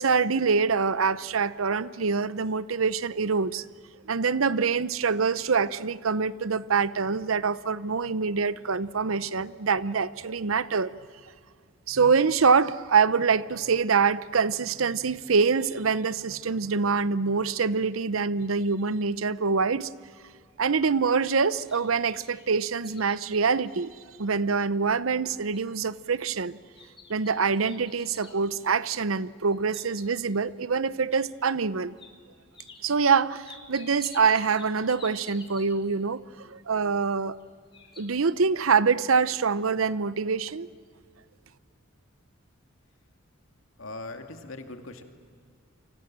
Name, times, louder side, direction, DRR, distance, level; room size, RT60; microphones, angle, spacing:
voice 1, 0.0-3.6 4.1-10.9 11.9-19.9 20.6-23.9 24.2-26.6 27.1-31.9 32.8-37.3 38.0-40.7, right 5 dB, 85° right, 17 dB, 0.8 m, -25 dB
sound 1, 21.1-24.4 24.9-25.0 25.5-25.9 26.8-28.4 29.4-30.4 31.1-31.2 32.0-32.1 32.5-36.0 37.0-37.5 37.7-38.0, left 4 dB, 25° left, 3.6 m, -50 dB
voice 2, 43.8-45.0, left 2 dB, 80° left, 6 dB, 2.4 m, -40 dB
29.5 x 25.0 x 7.6 m, 2.1 s
head